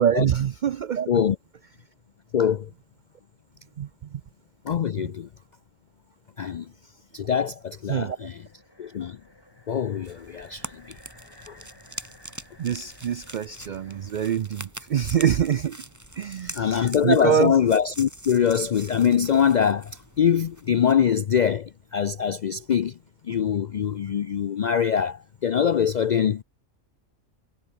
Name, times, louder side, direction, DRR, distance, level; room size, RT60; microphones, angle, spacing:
voice 1, 0.0-1.1 3.8-3.9 5.0-5.1 7.9-8.2 12.6-15.8 16.2-17.6, right 9 dB, 80° right, 0.4 m, -25 dB
voice 2, 2.3-2.7 4.7-5.3 6.4-6.7 7.1-8.4 8.8-9.2 9.7-10.8 11.4-11.5 16.5-22.9 23.3-26.4, left 8 dB, 80° left, 0.4 m, -23 dB
sound 1, 8.2-14.6, left 1 dB, 15° left, 6.6 m, -55 dB
sound 2, 10.0-21.0, right 1 dB, 10° right, 3.8 m, -43 dB
omnidirectional pair, 1.4 m